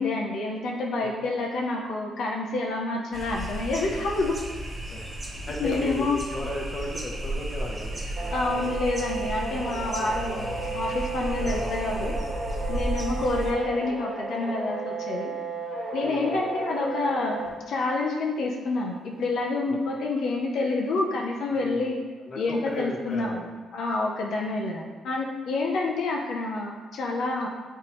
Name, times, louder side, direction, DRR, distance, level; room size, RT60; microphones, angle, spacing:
voice 1, 0.0-4.4 5.6-6.2 8.3-12.1 12.7-15.3 15.9-17.4 17.7-22.0 22.4-23.4 23.7-27.5, left 3 dB, 75° left, -1 dB, 0.7 m, -28 dB
sound 1, 3.1-13.5, right 1 dB, 25° right, 1.1 m, -34 dB
voice 2, 5.5-8.8 11.4-11.7 12.0-12.1 13.0-13.2 16.0-16.4 19.7-19.8 21.5-21.9 22.3-23.5, left 1 dB, 30° left, 0 dB, 1.0 m, -36 dB
sound 2, 8.2-17.5, right 3 dB, 60° right, 1.4 m, -33 dB
7.8 x 4.5 x 3.1 m, 1.4 s
cardioid pair, 145°, 0 cm